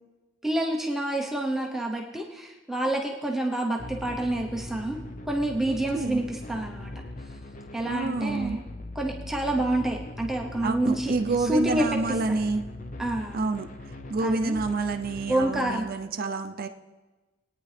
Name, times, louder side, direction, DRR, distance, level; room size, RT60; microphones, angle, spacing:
voice 1, 0.4-5.0 5.3-6.9 7.7-8.6 8.9-11.1 11.4-11.9 12.3-12.4 13.0-13.4 14.2-14.6 15.3-15.8, right 1 dB, ahead, 0 dB, 0.7 m, -28 dB
sound 1, 3.8-15.8, left 1 dB, 40° left, 0.8 m, -40 dB
voice 2, 5.7-6.2 7.8-8.6 10.6-12.7 13.3-16.7, right 3 dB, 50° right, 7 dB, 0.5 m, -28 dB
20.5 x 9.4 x 3.3 m, 1.2 s
head